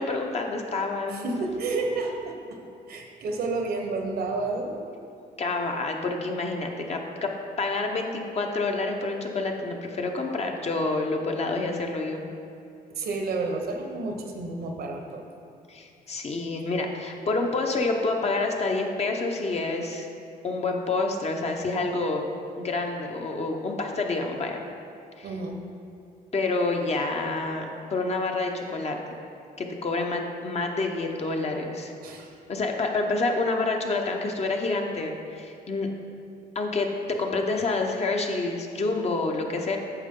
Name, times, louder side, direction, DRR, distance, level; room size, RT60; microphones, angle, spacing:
voice 1, 0.0-1.3 5.4-7.3 7.6-12.2 15.7-20.1 20.4-22.3 22.6-24.6 25.2-25.3 26.3-29.0 29.6-31.9 32.5-35.9 36.5-36.9 37.2-39.8, left 3 dB, 40° left, 2 dB, 0.9 m, -28 dB
voice 2, 1.1-2.6 2.9-4.9 12.9-15.2 25.2-25.6 32.0-32.3, right 3 dB, 70° right, 3 dB, 1.1 m, -31 dB
9.3 x 6.6 x 3.7 m, 2.6 s
cardioid pair, 115°, 17 cm